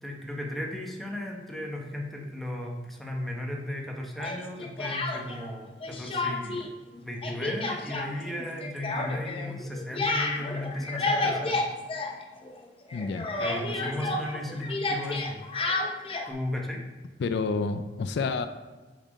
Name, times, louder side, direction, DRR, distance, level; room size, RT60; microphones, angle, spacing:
voice 1, 0.0-6.7 7.0-11.6 13.4-15.5 16.3-16.8, left 1 dB, ahead, 0 dB, 0.9 m, -35 dB
Speech, 4.2-5.5 5.8-6.7 6.9-12.6 12.9-16.3, left 2 dB, 30° left, 0.6 m, -31 dB
voice 2, 12.9-13.3 17.2-18.5, left 4 dB, 65° left, 10 dB, 0.4 m, -29 dB
5.9 x 4.3 x 5.2 m, 1.3 s
head